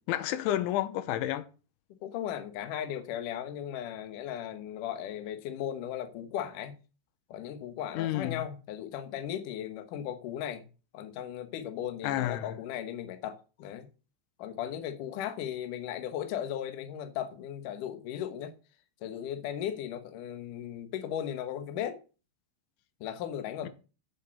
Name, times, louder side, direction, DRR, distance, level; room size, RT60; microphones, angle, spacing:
voice 1, 0.1-1.5 7.9-8.5 12.0-12.5 23.6-23.7, left 13 dB, 90° left, 3.3 m, -30 dB
voice 2, 2.0-6.8 7.3-10.7 10.9-13.9 14.4-18.5 19.0-22.0 23.0-23.7, left 10 dB, 70° left, 2.1 m, -37 dB
8.3 x 7.8 x 7.0 m
omnidirectional pair, 5.3 m